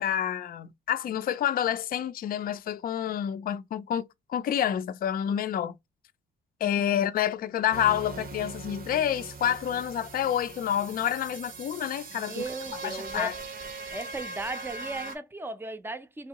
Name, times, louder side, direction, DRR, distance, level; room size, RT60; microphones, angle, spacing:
voice 1, 0.0-5.8 6.6-12.4 12.8-13.3, left 10 dB, 45° left, 0.4 m, -28 dB
voice 2, 6.6-7.0 12.1-13.4 13.9-16.3, right 2 dB, 10° right, 0.5 m, -37 dB
sound 1, 7.7-15.2, right 4 dB, 45° right, 0.7 m, -41 dB
3.2 x 2.6 x 2.9 m
cardioid pair, 90°, 20 cm